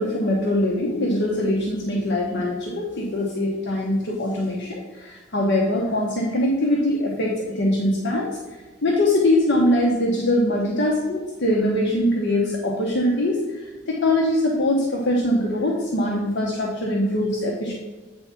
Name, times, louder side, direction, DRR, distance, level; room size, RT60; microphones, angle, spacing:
voice 1, 0.0-17.7, left 1 dB, 60° left, -2 dB, 1.0 m, -22 dB
8.8 x 3.5 x 5.8 m, 1.2 s
head